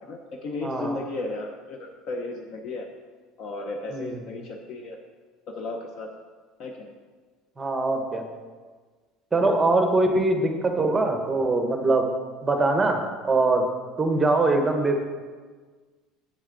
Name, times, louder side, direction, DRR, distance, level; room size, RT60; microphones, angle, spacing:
voice 1, 0.0-2.9 3.4-5.0 5.5-6.1 6.6-6.9, left 2 dB, 50° left, 3 dB, 0.7 m, -34 dB
voice 2, 0.6-1.0 3.9-4.1 7.6-8.2 9.3-12.1 12.4-13.7 14.0-15.0, right 2 dB, 15° right, 4 dB, 0.8 m, -22 dB
7.8 x 7.5 x 3.8 m, 1.5 s
cardioid pair, 145°, 0 cm